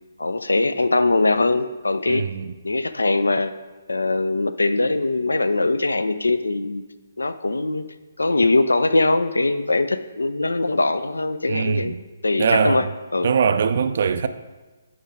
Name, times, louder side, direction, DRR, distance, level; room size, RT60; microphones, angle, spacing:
voice 1, 0.2-2.2 2.6-3.5 3.9-6.8 7.2-7.8 8.2-11.9 12.2-13.3, left 2 dB, 75° left, 0.4 m, -21 dB
voice 2, 2.1-2.5 11.5-12.0 12.4-12.9 13.2-14.3, right 6 dB, 50° right, 0.4 m, -22 dB
8.6 x 4.6 x 3.6 m
figure-of-eight pair, 135°, 0 cm